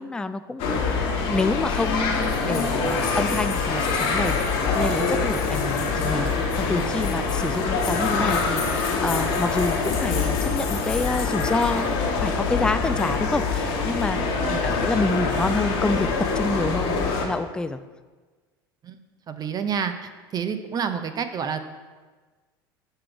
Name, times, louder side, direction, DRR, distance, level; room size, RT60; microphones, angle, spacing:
voice 1, 0.0-4.4 4.7-6.3 6.6-14.2 14.5-16.1 16.4-17.8, left 2 dB, 5° left, 11 dB, 0.3 m, -28 dB
sound 1, 0.6-17.3, left 4 dB, 55° left, 1.3 m, -24 dB
voice 2, 14.2-14.7 18.8-19.0 19.3-21.6, right 7 dB, 30° right, 9 dB, 0.6 m, -29 dB
6.7 x 3.7 x 5.8 m, 1.4 s
hypercardioid pair, 75°, 12 cm